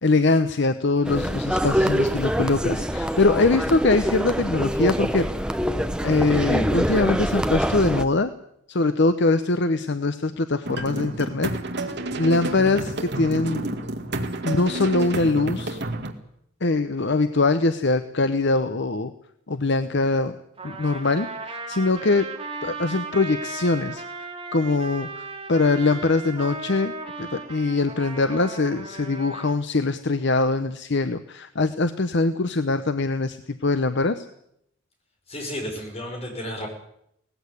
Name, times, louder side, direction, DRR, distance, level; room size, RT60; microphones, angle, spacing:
voice 1, 0.0-5.3 6.0-8.3 8.7-11.5 12.2-13.6 14.4-15.8 16.6-19.1 19.5-20.4 20.6-22.3 22.6-26.9 27.2-34.3, left 3 dB, 60° left, 10 dB, 0.8 m, -22 dB
sound 1, 1.1-8.0, equal, 5° right, 0.8 m, -25 dB
sound 2, 10.6-16.1, right 2 dB, 55° right, 2.0 m, -30 dB
Trumpet, 20.6-29.6, right 3 dB, 25° right, 2.9 m, -36 dB
voice 2, 35.3-36.7, equal, 30° left, 2 dB, 5.5 m, -32 dB
18.5 x 15.0 x 9.7 m, 0.74 s
head